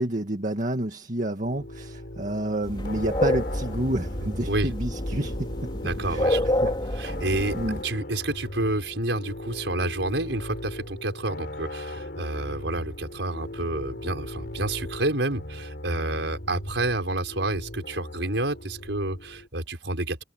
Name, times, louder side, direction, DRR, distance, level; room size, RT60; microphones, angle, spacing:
voice 1, 0.0-5.7 6.1-6.3 6.6-6.7 7.5-7.8, right 1 dB, 45° right, 1.9 m, -29 dB
sound 1, 1.4-19.5, left 1 dB, 60° left, 4.1 m, -38 dB
sound 2, 2.6-7.8, left 1 dB, 25° left, 3.6 m, -28 dB
voice 2, 5.8-7.6 7.8-20.2, right 2 dB, 80° right, 5.6 m, -29 dB
head